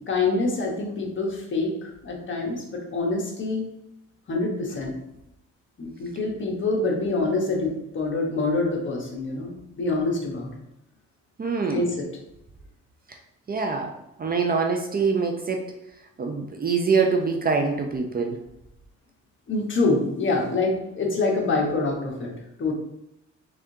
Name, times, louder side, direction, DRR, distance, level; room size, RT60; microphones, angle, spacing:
voice 1, 0.1-3.7 4.3-4.9 5.8-10.5 11.7-12.1 19.5-22.3 22.6-22.7, left 3 dB, 40° left, -1 dB, 1.1 m, -26 dB
voice 2, 11.4-11.9 13.5-13.9 14.2-15.7 16.2-18.4, right 5 dB, 30° right, 3 dB, 0.5 m, -24 dB
3.6 x 3.5 x 2.7 m, 0.87 s
cardioid pair, 90°, 30 cm